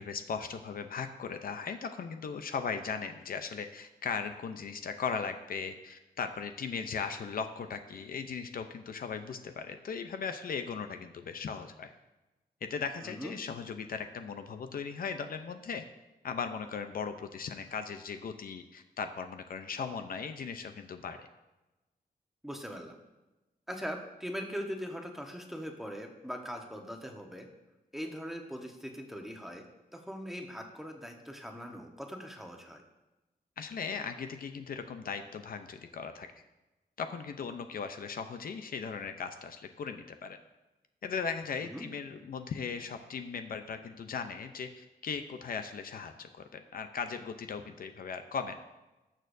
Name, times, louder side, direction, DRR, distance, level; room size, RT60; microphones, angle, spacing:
voice 1, 0.0-11.9 12.7-15.9 16.2-21.3 33.6-36.3 37.0-40.4 41.0-48.6, left 6 dB, 65° left, 8 dB, 0.6 m, -38 dB
voice 2, 13.0-13.3 22.4-23.0 23.7-27.5 27.9-29.6 29.9-32.8 41.7-41.8, equal, ahead, 2 dB, 1.1 m, -41 dB
19.0 x 6.6 x 2.7 m, 1.1 s
wide cardioid pair, 140°, 16 cm